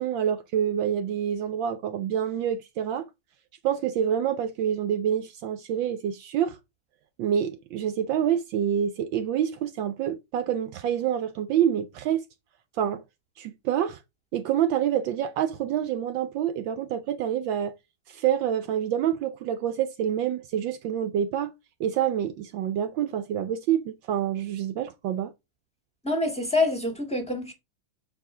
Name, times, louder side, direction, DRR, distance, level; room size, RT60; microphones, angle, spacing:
voice 1, 0.0-3.1 3.6-6.6 7.2-12.2 12.8-13.0 13.4-14.0 14.3-17.7 18.1-21.5 21.8-25.3, right 9 dB, 75° right, 1.3 m, -27 dB
voice 2, 26.0-27.5, left 2 dB, 5° left, 1.6 m, -26 dB
7.1 x 4.6 x 3.7 m
omnidirectional pair, 2.2 m